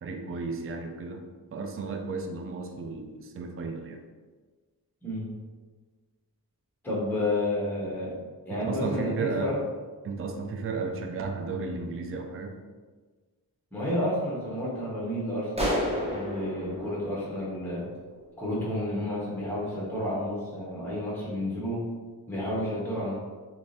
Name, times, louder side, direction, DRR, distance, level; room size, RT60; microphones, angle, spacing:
voice 1, 0.0-4.0 8.5-9.5 10.0-12.6, right 4 dB, 35° right, 4 dB, 0.4 m, -34 dB
voice 2, 5.0-5.3 6.8-8.1 8.4-9.6 13.7-17.8 18.4-21.9 22.3-23.1, left 1 dB, 5° left, -6 dB, 1.1 m, -31 dB
sound 1, 15.6-18.1, equal, 15° right, 0.8 m, -32 dB
3.5 x 3.0 x 2.6 m, 1.4 s
wide cardioid pair, 85°, 39 cm